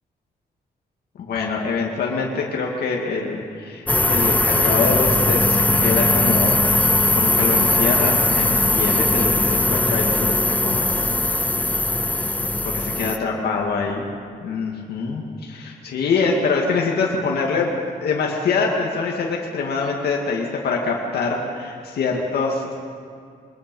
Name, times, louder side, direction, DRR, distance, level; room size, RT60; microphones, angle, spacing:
voice 1, 1.2-6.6 7.1-10.9 12.7-14.0 14.4-17.7 18.0-22.7, left 4 dB, 85° left, -2 dB, 2.2 m, -24 dB
sound 1, 3.9-13.2, left 2 dB, 10° left, 0.5 m, -19 dB
23.5 x 21.5 x 5.4 m, 2.2 s
wide cardioid pair, 170°, 16 cm